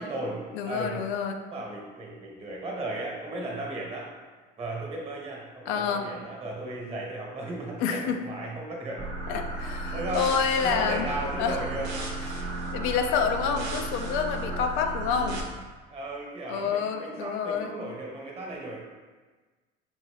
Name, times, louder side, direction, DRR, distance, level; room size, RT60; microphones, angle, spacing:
voice 1, 0.0-1.0 1.5-4.1 4.6-9.1 9.9-10.3 10.6-11.9 15.9-18.8, right 2 dB, 30° right, -2 dB, 1.1 m, -35 dB
voice 2, 0.6-1.4 5.7-6.1 7.8-8.2 9.3-11.1 11.4-11.6 12.3-15.4 16.5-17.7, left 6 dB, 90° left, 5 dB, 0.5 m, -28 dB
sound 1, 9.0-15.4, right 2 dB, 80° right, 0.8 m, -33 dB
5.3 x 2.6 x 3.2 m, 1.3 s
cardioid pair, 125°, 20 cm